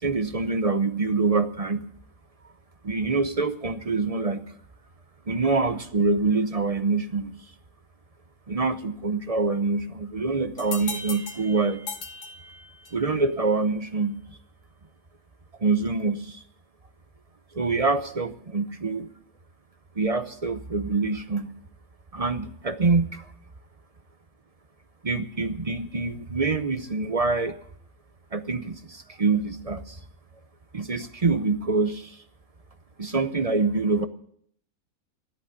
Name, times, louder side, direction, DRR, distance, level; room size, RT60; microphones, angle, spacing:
voice 1, 0.0-1.9 2.8-4.4 5.3-7.4 8.5-11.8 12.9-14.2 15.6-16.4 17.5-19.1 20.0-21.5 22.1-23.3 25.0-27.6 28.3-30.0 30.7-32.2 33.0-34.1, right 3 dB, 35° right, 10 dB, 0.6 m, -25 dB
sound 1, 10.6-13.1, left 4 dB, 60° left, 1.5 m, -38 dB
13.5 x 11.5 x 8.1 m, 0.63 s
omnidirectional pair, 1.5 m